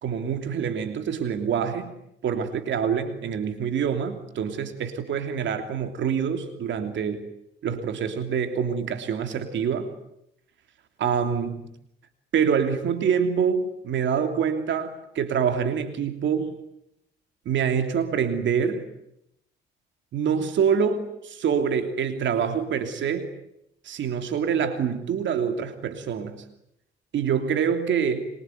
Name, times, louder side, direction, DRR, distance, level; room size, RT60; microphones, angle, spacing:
voice 1, 0.0-1.9 2.2-7.3 7.6-9.9 11.0-11.7 12.3-16.6 17.4-18.9 20.1-23.3 23.8-26.4 27.1-28.3, right 7 dB, 70° right, 7 dB, 3.1 m, -26 dB
26.0 x 23.5 x 9.4 m, 0.79 s
cardioid pair, 90°, 20 cm